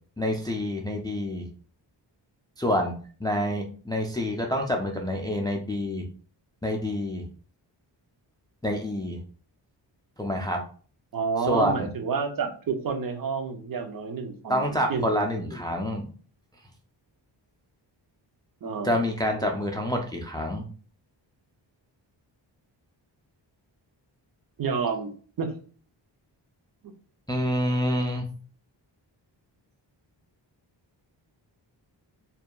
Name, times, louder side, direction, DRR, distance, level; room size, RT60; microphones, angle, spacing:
voice 1, 0.2-1.4 2.6-2.9 3.2-6.0 6.6-7.2 8.6-9.2 10.2-10.6 11.5-11.9 14.5-16.1 18.8-20.7 27.3-28.2, equal, 10° left, 2 dB, 0.3 m, -27 dB
voice 2, 11.1-15.2 18.6-19.0 24.6-25.1 25.4-25.5, right 5 dB, 50° right, 5 dB, 0.5 m, -29 dB
2.7 x 2.3 x 2.2 m, 0.42 s
cardioid pair, 75°, 45 cm